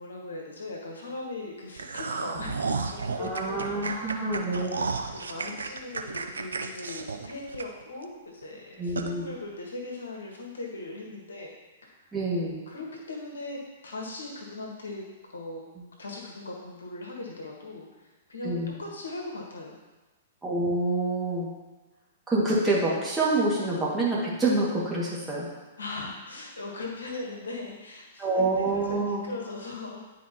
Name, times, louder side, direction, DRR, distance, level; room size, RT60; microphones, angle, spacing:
voice 1, 0.0-4.8 5.1-11.5 11.8-12.1 12.7-15.0 15.3-15.6 16.0-19.8 25.8-30.0, left 2 dB, 70° left, -1 dB, 1.5 m, -39 dB
sound 1, 1.8-8.0 8.4-8.5 9.0-9.1, right 4 dB, 70° right, 0.5 m, -33 dB
voice 2, 3.2-4.8 8.8-9.3 12.1-12.6 18.4-18.7 20.4-21.5 22.3-25.5 28.2-29.2, right 2 dB, 10° right, -6 dB, 2.0 m, -27 dB
10.0 x 4.7 x 2.9 m, 1.2 s
figure-of-eight pair, 110°, 0 cm